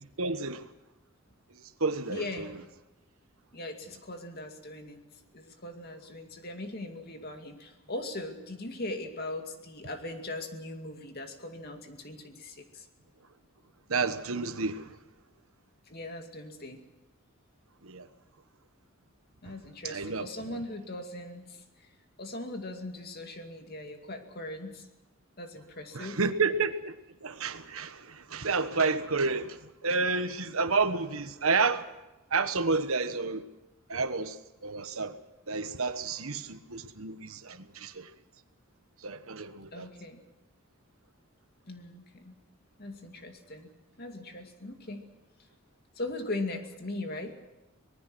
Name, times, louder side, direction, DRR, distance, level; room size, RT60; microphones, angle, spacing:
voice 1, 0.2-0.6 1.8-2.5 13.9-14.9 17.8-18.1 19.8-20.6 25.9-26.9 27.2-29.6 29.8-31.8 32.3-33.4 33.9-34.4 34.6-35.1 35.5-38.1 39.0-39.9, right 4 dB, 80° right, 1.4 m, -30 dB
voice 2, 2.1-2.5 3.5-5.0 5.3-12.9 15.9-16.8 19.4-21.9 22.2-24.9 25.4-26.2 39.7-40.2 41.7-42.4 42.8-43.7 44.0-45.1 46.0-47.4, left 2 dB, 50° left, 2.4 m, -39 dB
25.0 x 19.5 x 6.2 m
head